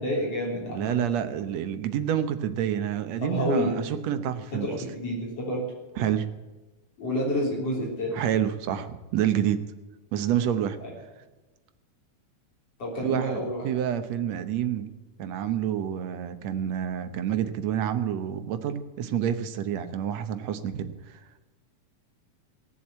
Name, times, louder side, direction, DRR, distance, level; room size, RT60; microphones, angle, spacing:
voice 1, 0.0-1.0 3.2-3.8 4.5-5.7 7.0-8.2 12.8-13.8, equal, 55° left, -2 dB, 4.5 m, -29 dB
voice 2, 0.7-4.8 6.0-6.3 8.1-9.6 10.1-10.8 13.0-14.9 15.2-21.2, right 9 dB, 70° right, 9 dB, 2.0 m, -28 dB
19.0 x 7.0 x 8.5 m, 1.2 s
omnidirectional pair, 3.4 m